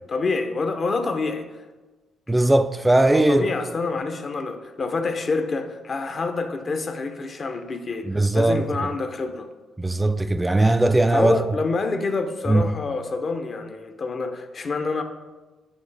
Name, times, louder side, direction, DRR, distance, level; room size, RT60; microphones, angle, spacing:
voice 1, 0.1-1.6 2.9-9.5 11.1-15.0, left 3 dB, 45° left, 0.7 m, -27 dB
voice 2, 2.3-3.5 8.1-8.6 9.8-11.4 12.5-12.7, right 2 dB, 15° right, 0.3 m, -19 dB
9.3 x 3.2 x 3.3 m
hypercardioid pair, 45°, 0 cm